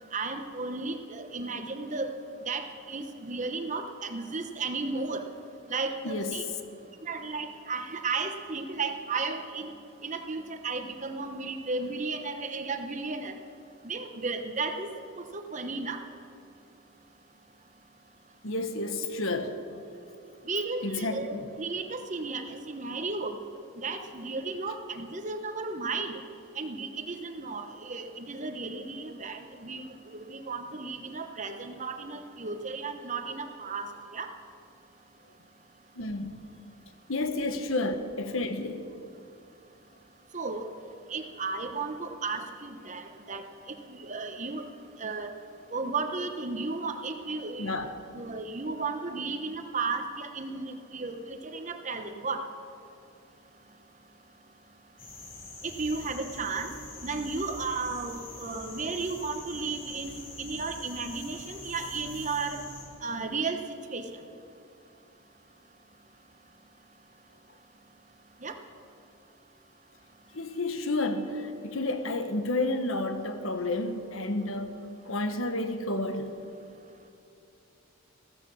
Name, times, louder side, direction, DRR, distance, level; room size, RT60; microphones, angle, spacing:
voice 1, 0.1-2.1 2.5-5.2 5.7-6.4 7.0-9.7 10.0-13.3 13.8-14.9 15.2-16.0 20.4-23.4 23.8-26.2 26.6-34.3 40.3-40.7 41.1-43.4 43.9-44.7 45.0-45.3 45.7-47.7 48.1-52.4 55.6-56.7 57.0-62.6 63.0-63.6 63.9-64.1 68.4-68.6, right 4 dB, 35° right, 6 dB, 1.0 m, -34 dB
voice 2, 6.0-6.4 18.4-19.6 20.8-21.5 35.9-36.5 37.1-38.9 47.6-48.0 70.3-76.4, left 2 dB, 65° left, 8 dB, 1.3 m, -31 dB
sound 1, 55.0-62.8, left 2 dB, 40° left, 4.8 m, -45 dB
15.0 x 14.0 x 6.3 m, 2.7 s
head